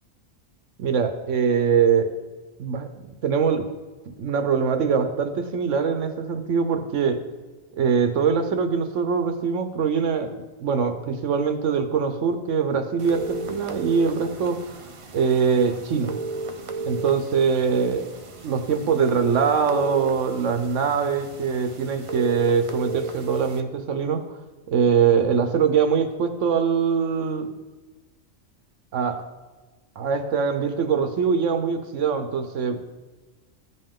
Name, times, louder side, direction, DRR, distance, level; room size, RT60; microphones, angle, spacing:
voice 1, 0.8-2.1 2.6-3.7 4.2-7.2 7.8-14.6 15.1-16.2 16.9-18.1 18.4-24.2 24.7-27.5 28.9-29.2 30.0-32.8, right 6 dB, 70° right, 7 dB, 1.0 m, -23 dB
sound 1, 13.0-23.6, right 3 dB, 45° right, 0.4 m, -35 dB
14.5 x 5.5 x 3.6 m, 1.3 s
omnidirectional pair, 1.3 m